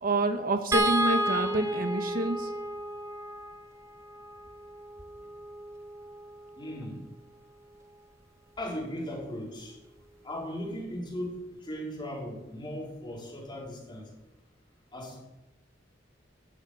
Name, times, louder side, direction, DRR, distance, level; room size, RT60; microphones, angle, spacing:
voice 1, 0.0-2.5, right 2 dB, 50° right, 7 dB, 1.0 m, -28 dB
sound 1, 0.7-7.0 8.6-8.7 9.1-9.2, right 1 dB, 15° right, 1.1 m, -32 dB
voice 2, 6.6-7.0 8.6-9.8 10.2-14.0 14.9-15.3, equal, 25° left, -3 dB, 4.0 m, -37 dB
11.5 x 7.3 x 8.4 m, 0.97 s
head